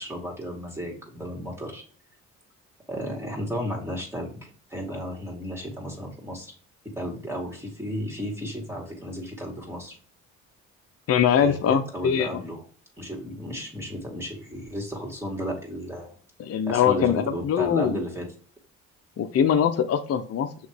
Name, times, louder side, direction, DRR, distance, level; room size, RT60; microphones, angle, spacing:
voice 1, 0.0-1.8 2.9-6.5 7.0-10.0 11.4-12.6 13.0-16.1 16.7-18.3, equal, 10° right, -1 dB, 2.3 m, -33 dB
voice 2, 11.1-12.4 16.4-18.0 19.2-20.5, left 8 dB, 50° left, 5 dB, 0.7 m, -22 dB
6.3 x 3.1 x 4.9 m, 0.43 s
cardioid pair, 90°, 30 cm